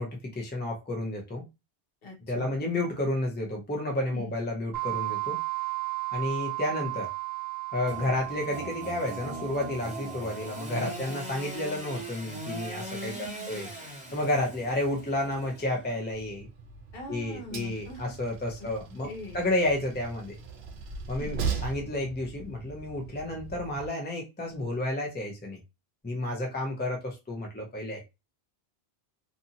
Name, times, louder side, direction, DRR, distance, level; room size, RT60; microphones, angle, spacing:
voice 1, 0.0-1.4 2.3-5.4 6.1-7.1 7.7-13.1 13.5-13.9 14.1-16.5 17.1-19.1 19.3-20.3 21.1-25.6 26.0-28.1, left 1 dB, 10° left, 0 dB, 0.6 m, -31 dB
voice 2, 2.0-2.6 4.0-4.4 10.7-11.2 13.0-13.6 16.9-18.1 19.0-19.4 21.1-21.3, left 1 dB, 65° left, 1 dB, 1.1 m, -43 dB
sound 1, 4.7-11.2, right 24 dB, 45° right, 0.8 m, -35 dB
Engine / Sawing, 7.9-16.1, right 1 dB, 5° right, 1.0 m, -40 dB
Train, 16.1-23.9, right 5 dB, 80° right, 0.8 m, -39 dB
2.7 x 2.6 x 2.7 m, 0.25 s
omnidirectional pair, 1.1 m